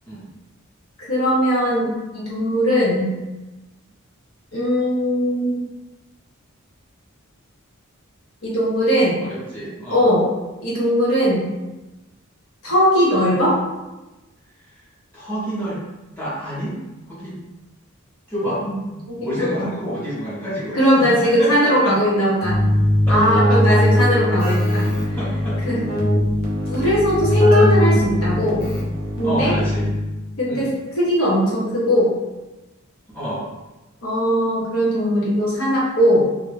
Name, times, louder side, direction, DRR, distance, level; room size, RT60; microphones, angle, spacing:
voice 1, 1.1-3.1 4.5-5.6 8.4-9.2 9.9-10.3 10.6-11.5 12.6-13.6 18.6-18.8 19.1-19.7 20.7-22.6 23.1-24.8 25.6-25.8 26.7-28.7 29.2-29.6 30.4-30.7 31.0-32.1 34.0-36.2, equal, 75° left, -6 dB, 1.0 m, -19 dB
voice 2, 9.2-10.0 15.1-15.8 16.2-16.7 17.1-17.4 18.3-22.0 23.1-23.8 25.2-25.6 26.9-27.0 29.2-29.9 30.5-30.7 33.1-33.5, equal, 10° left, -9 dB, 0.6 m, -29 dB
Keyboard (musical), 22.4-30.3, left 1 dB, 45° left, 0.6 m, -20 dB
2.4 x 2.1 x 3.2 m, 1.0 s
head